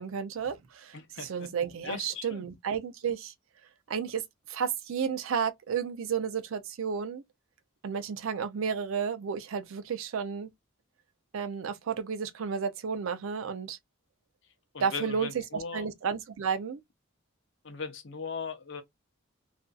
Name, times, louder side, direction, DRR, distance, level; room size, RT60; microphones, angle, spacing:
voice 1, 0.0-3.3 3.9-7.2 7.8-10.5 11.3-13.8 14.8-16.8, right 6 dB, 70° right, 0.4 m, -32 dB
voice 2, 0.9-1.5 1.8-2.4 14.7-15.8 17.6-18.8, left 5 dB, 55° left, 0.7 m, -38 dB
2.6 x 2.3 x 2.2 m
head